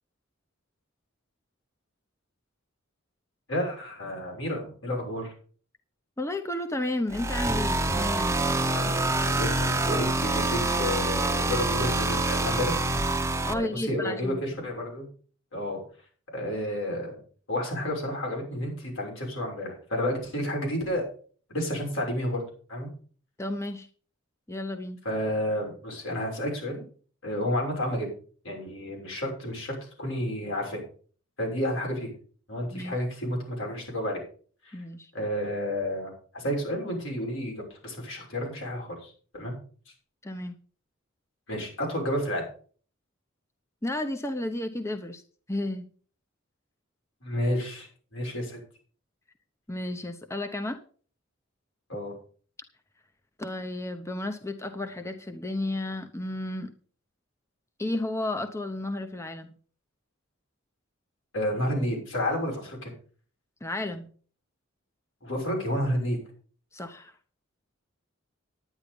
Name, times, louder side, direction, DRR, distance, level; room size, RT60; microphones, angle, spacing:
voice 1, 3.5-5.3 8.7-12.7 13.5-15.1 15.5-15.8 16.3-17.2 17.5-21.0 21.5-22.4 22.7-22.9 25.0-26.8 27.2-28.1 28.4-30.8 31.4-32.1 32.5-34.2 34.6-34.8 35.1-39.5 41.5-42.4 47.2-48.6 51.9-52.1 61.3-62.9 65.2-66.2, left 1 dB, 80° left, 0 dB, 6.3 m, -31 dB
voice 2, 6.2-8.4 13.4-14.4 23.4-23.9 24.5-25.0 32.7-33.0 34.7-35.1 40.2-40.6 43.8-45.2 45.5-45.9 49.7-50.8 53.4-56.7 57.8-59.5 63.6-64.1 66.7-67.1, left 1 dB, 15° left, 6 dB, 0.8 m, -32 dB
sound 1, 7.1-13.5, right 2 dB, 15° right, 0.9 m, -26 dB
10.5 x 10.0 x 5.2 m, 0.43 s
head